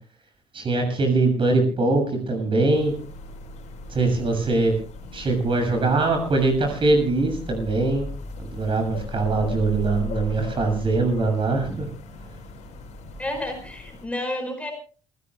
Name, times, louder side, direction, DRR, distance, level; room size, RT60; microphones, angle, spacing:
voice 1, 0.5-2.9 3.9-4.7 5.1-8.1 8.5-11.9, right 3 dB, 35° right, 5 dB, 7.1 m, -22 dB
sound 1, 2.7-14.1, left 2 dB, 50° left, 5.3 m, -37 dB
voice 2, 13.2-14.7, left 1 dB, 10° left, 4 dB, 5.1 m, -30 dB
28.0 x 16.0 x 2.2 m, 0.37 s
figure-of-eight pair, 55°, 15 cm